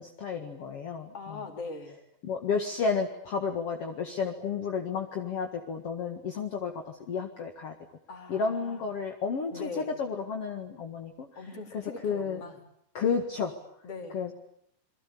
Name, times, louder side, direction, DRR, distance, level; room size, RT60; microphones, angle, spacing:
voice 1, 0.0-1.4 2.2-7.7 8.3-11.3 11.7-12.4 12.9-13.6 14.1-14.3, left 5 dB, 50° left, 4 dB, 1.9 m, -32 dB
voice 2, 1.1-2.0 8.1-8.8 9.5-9.9 11.4-12.6 13.8-14.2, left 3 dB, 35° left, 4 dB, 4.3 m, -41 dB
29.0 x 23.0 x 8.6 m, 0.71 s
omnidirectional pair, 5.2 m